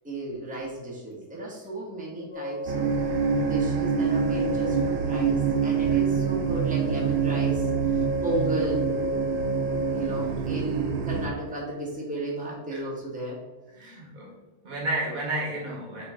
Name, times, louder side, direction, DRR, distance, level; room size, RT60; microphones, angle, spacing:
voice 1, 0.0-2.9 3.4-8.9 9.9-13.4 13.8-14.0, right 2 dB, 5° right, -4 dB, 1.2 m, -34 dB
sound 1, 2.3-10.3, equal, 65° left, 2.0 m, -33 dB
sound 2, 2.7-11.3, right 6 dB, 80° right, 1.6 m, -26 dB
voice 2, 13.7-14.4 14.6-16.1, right 1 dB, 45° right, -1 dB, 1.5 m, -32 dB
6.6 x 4.5 x 3.8 m, 1.2 s
omnidirectional pair, 2.4 m